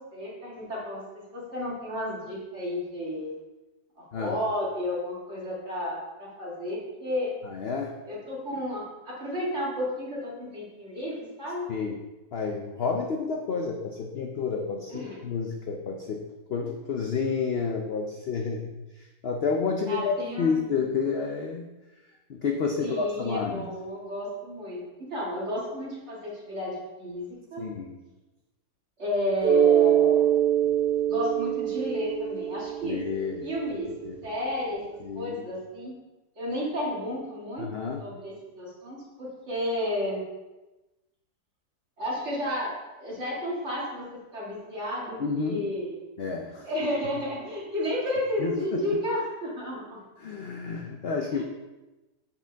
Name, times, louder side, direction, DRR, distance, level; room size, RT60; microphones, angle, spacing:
voice 1, 0.0-3.4 4.1-7.3 8.1-11.6 14.9-15.2 19.9-20.6 22.8-27.7 29.0-30.2 31.1-33.0 33.4-33.9 34.2-34.8 35.2-35.9 36.4-37.7 38.0-40.2 42.0-42.7 43.0-44.1 44.3-46.0 46.6-49.8 51.3-51.4, left 1 dB, 45° right, -6 dB, 2.3 m, -32 dB
voice 2, 7.4-8.0 11.7-12.0 12.3-21.7 22.0-23.7 27.6-28.0 32.8-33.4 33.9-34.3 35.0-35.4 37.6-38.0 45.2-45.7 46.2-46.7 48.4-48.8 50.2-51.4, left 5 dB, 60° left, 1 dB, 0.6 m, -30 dB
Mallet percussion, 29.4-33.9, right 10 dB, 90° right, 1.4 m, -24 dB
7.4 x 5.3 x 3.4 m, 1.1 s
omnidirectional pair, 1.7 m